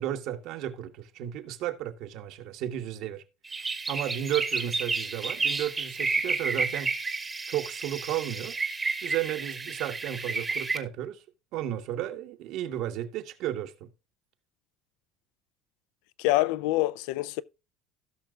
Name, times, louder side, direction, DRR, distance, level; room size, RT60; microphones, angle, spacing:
voice 1, 0.0-3.2 3.9-6.9 7.5-8.6 9.0-11.2 11.5-13.9, right 12 dB, 55° right, 1.3 m, -33 dB
sound 1, 3.5-10.8, right 4 dB, 15° right, 1.0 m, -31 dB
voice 2, 16.2-17.4, left 18 dB, 75° left, 0.4 m, -26 dB
16.5 x 6.1 x 2.4 m
cardioid pair, 160°, 0 cm